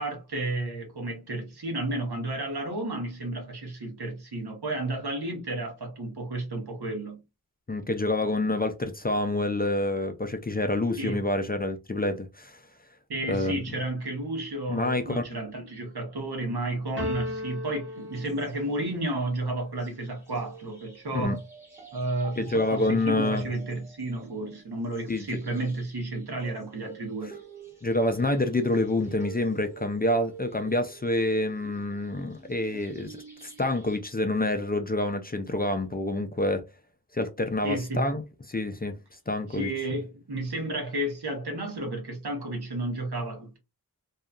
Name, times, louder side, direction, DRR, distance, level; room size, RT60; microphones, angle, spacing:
voice 1, 0.0-7.2 11.0-11.2 13.1-21.4 21.9-27.4 37.6-38.1 39.5-43.6, right 2 dB, 80° right, 1.0 m, -32 dB
voice 2, 7.7-12.6 13.3-13.6 14.7-15.2 21.1-21.4 22.4-23.5 25.1-25.4 27.8-36.6 37.1-38.2 38.5-39.0 39.3-39.7, left 2 dB, 25° left, 0.3 m, -27 dB
sound 1, 17.0-18.9, left 1 dB, 30° right, 1.0 m, -35 dB
sound 2, 18.0-19.2 19.8-34.0, right 6 dB, 5° right, 1.1 m, -47 dB
2.7 x 2.3 x 2.3 m
wide cardioid pair, 55°, 39 cm